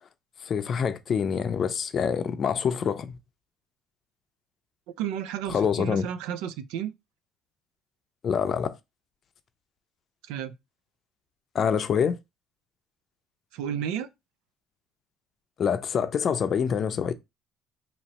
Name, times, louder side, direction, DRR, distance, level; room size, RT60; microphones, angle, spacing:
voice 1, 0.4-3.2 5.5-6.1 8.2-8.8 11.5-12.2 15.6-17.1, left 7 dB, 40° left, 0.5 m, -26 dB
voice 2, 5.0-6.9 10.3-10.5 13.5-14.1, right 9 dB, 90° right, 0.4 m, -32 dB
2.8 x 2.8 x 4.1 m
cardioid pair, 115°, 0 cm